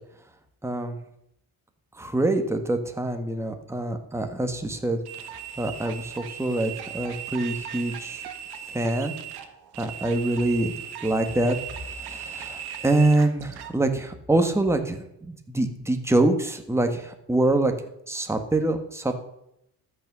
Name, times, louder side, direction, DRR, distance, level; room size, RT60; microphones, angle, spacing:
voice 1, 0.6-1.0 2.0-5.0 5.6-8.2 8.7-9.1 9.8-10.7 11.0-11.6 11.9-17.7 18.1-19.2, right 2 dB, 5° right, 5 dB, 1.5 m, -25 dB
sound 1, 5.0-13.7, right 9 dB, 75° right, 1.5 m, -38 dB
13.5 x 6.2 x 6.8 m, 0.78 s
cardioid pair, 100°, 38 cm